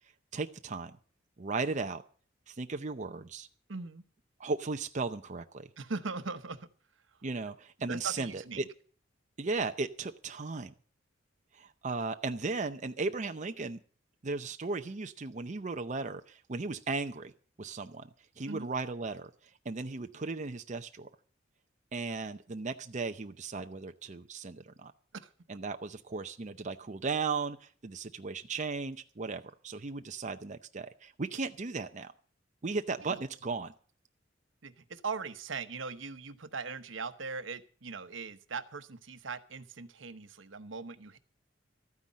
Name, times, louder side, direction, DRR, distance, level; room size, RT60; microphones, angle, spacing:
voice 1, 0.3-1.0 1.4-2.0 2.5-3.5 4.4-5.7 7.2-8.6 9.4-10.7 11.5-13.8 14.2-17.3 17.6-18.1 18.4-19.3 19.6-21.1 21.9-24.9 25.5-32.1 32.6-33.7, right 4 dB, 40° right, 7 dB, 0.7 m, -36 dB
voice 2, 3.7-4.0 5.8-6.7 7.1-7.2 7.9-8.7 18.5-18.7 25.2-25.3 33.0-33.2 34.6-41.2, right 4 dB, 85° right, 10 dB, 1.0 m, -40 dB
13.5 x 9.6 x 7.4 m, 0.43 s
head